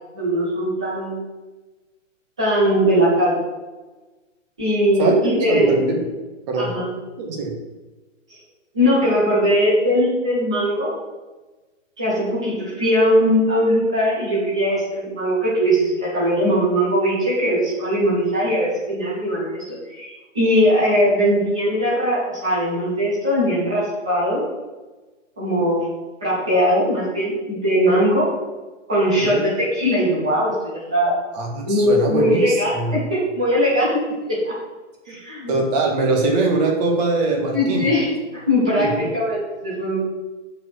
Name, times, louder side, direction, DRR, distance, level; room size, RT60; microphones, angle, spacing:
voice 1, 0.1-1.2 2.4-3.4 4.6-5.8 6.6-6.9 8.7-10.9 12.0-24.4 25.4-25.8 26.2-28.3 28.9-31.2 31.7-34.0 34.3-34.5 35.1-35.5 37.5-38.1 38.3-40.0, equal, 5° right, -8 dB, 0.4 m, -20 dB
voice 2, 5.0-6.0 6.5-6.7 7.2-7.6 29.2-29.4 31.3-33.1 35.1-35.2 35.5-37.9 38.8-39.1, right 3 dB, 30° right, 1 dB, 1.7 m, -22 dB
7.3 x 4.7 x 6.3 m, 1.2 s
hypercardioid pair, 155°, 39 cm